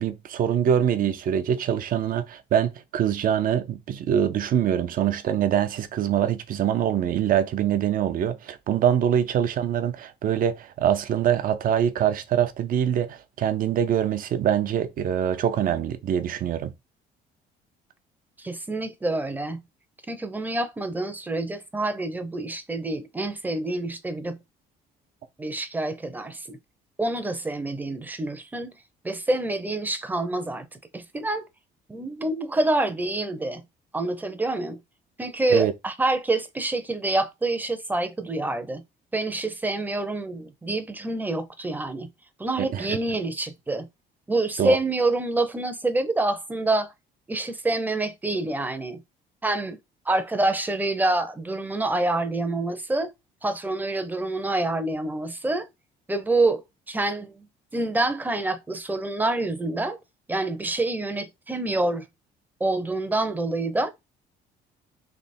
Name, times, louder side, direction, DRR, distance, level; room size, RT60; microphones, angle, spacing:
voice 1, 0.0-16.7 35.5-35.7 42.6-43.0 44.6-44.8, right 9 dB, 55° right, 0.7 m, -24 dB
voice 2, 18.4-19.6 20.1-24.4 25.4-26.6 27.0-28.7 29.0-31.4 31.9-33.6 33.9-34.8 35.2-38.8 39.1-42.1 42.4-43.9 44.3-46.9 47.3-49.0 49.4-49.8 50.1-53.1 53.4-55.7 56.1-56.6 56.9-57.5 57.7-60.0 60.3-62.0 62.6-63.9, right 2 dB, 10° right, 0.7 m, -27 dB
3.4 x 2.9 x 4.2 m
cardioid pair, 110°, 17 cm